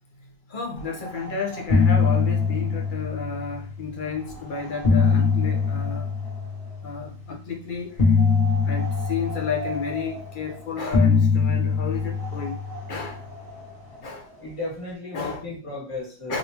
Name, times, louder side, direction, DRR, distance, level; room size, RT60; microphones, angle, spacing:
voice 1, 0.5-6.1 6.8-8.2 8.6-12.6 12.9-13.3 14.0-14.3 15.1-15.5 16.3-16.4, left 5 dB, 45° left, 0.8 m, -32 dB
sound 1, 1.0-1.3 1.5-3.9 4.5-7.0 8.0-10.4 10.9-13.5, left 4 dB, 80° left, 1.6 m, -23 dB
voice 2, 14.4-16.4, left 2 dB, 25° left, 1.5 m, -34 dB
3.8 x 2.7 x 2.8 m
omnidirectional pair, 1.4 m